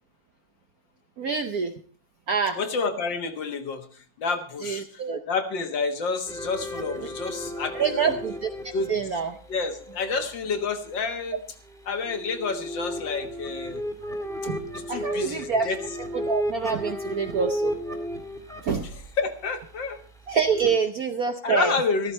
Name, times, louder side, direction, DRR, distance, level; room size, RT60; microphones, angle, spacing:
voice 1, 1.2-1.7 2.3-2.6 4.6-5.2 7.7-8.5 8.9-9.3 14.4-15.7 16.2-17.7 18.6-18.9 20.3-21.7, right 6 dB, 60° right, 7 dB, 1.0 m, -26 dB
voice 2, 2.6-5.0 5.3-8.2 8.7-8.9 9.5-11.4 11.9-13.8 14.7-15.8 18.8-18.9 19.2-20.0 21.4-22.1, left 4 dB, 60° left, 6 dB, 2.0 m, -29 dB
sound 1, 6.3-10.7 11.6-20.8, equal, ahead, 1.7 m, -34 dB
14.0 x 13.5 x 4.3 m, 0.43 s
omnidirectional pair, 2.4 m